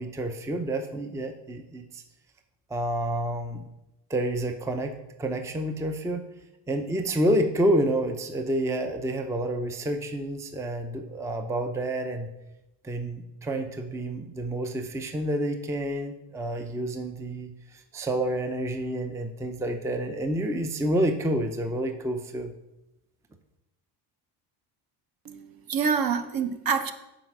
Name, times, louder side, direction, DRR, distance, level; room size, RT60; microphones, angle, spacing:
voice 1, 0.0-2.0 2.7-3.6 4.1-6.2 6.7-12.3 12.8-22.5, right 1 dB, 5° right, 6 dB, 0.5 m, -29 dB
voice 2, 25.2-26.9, right 6 dB, 45° right, 8 dB, 0.9 m, -27 dB
7.8 x 4.7 x 6.1 m, 0.94 s
cardioid pair, 100°, 50 cm